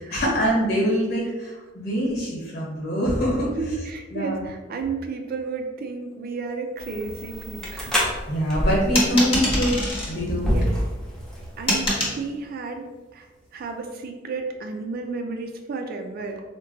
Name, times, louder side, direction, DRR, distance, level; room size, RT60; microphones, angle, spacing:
voice 1, 0.0-3.5 4.1-4.4 8.3-9.8 10.1-10.6, equal, 55° left, -4 dB, 1.2 m, -24 dB
voice 2, 3.5-8.0 10.4-10.8 11.6-13.3 13.5-16.4, right 4 dB, 50° right, 4 dB, 0.3 m, -32 dB
sound 1, 6.8-12.0, equal, 5° left, 0.6 m, -28 dB
sound 2, 9.0-10.1 11.7-12.2, left 1 dB, 30° left, 0.9 m, -24 dB
3.9 x 2.2 x 2.6 m, 1.2 s
head